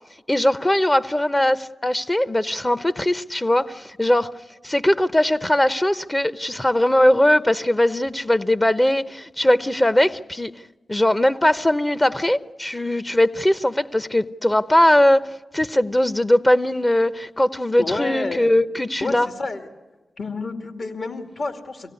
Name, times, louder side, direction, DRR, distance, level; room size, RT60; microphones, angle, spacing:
voice 1, 0.3-4.3 4.6-10.5 10.9-19.3, left 1 dB, 20° left, 0.8 m, -20 dB
voice 2, 17.8-18.5 19.0-19.6 20.2-21.9, left 3 dB, 60° left, 2.3 m, -29 dB
24.5 x 17.5 x 9.7 m
supercardioid pair, 40°, 0 cm